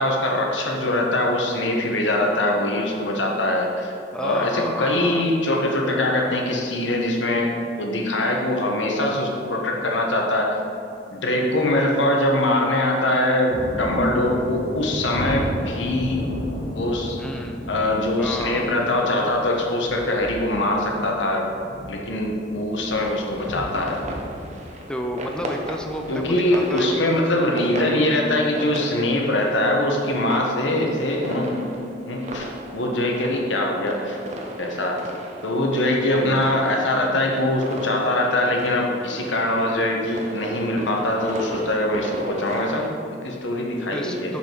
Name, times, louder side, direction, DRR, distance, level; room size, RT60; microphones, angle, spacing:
voice 1, 0.0-3.9 4.2-7.5 7.8-10.6 11.1-16.3 16.7-17.2 17.7-21.5 21.8-24.0 26.1-32.5 32.7-34.2 34.6-35.0 35.4-44.3, left 1 dB, 90° left, 0 dB, 1.2 m, -22 dB
voice 2, 4.1-5.4 17.2-17.6 18.2-18.7 24.9-27.1 35.9-36.4 43.9-44.4, equal, 5° left, 2 dB, 0.5 m, -31 dB
Thunder, 13.5-26.8, equal, 50° left, 1.3 m, -35 dB
sound 1, 23.4-42.9, right 1 dB, 40° right, 0.8 m, -36 dB
6.9 x 5.5 x 4.7 m, 2.6 s
head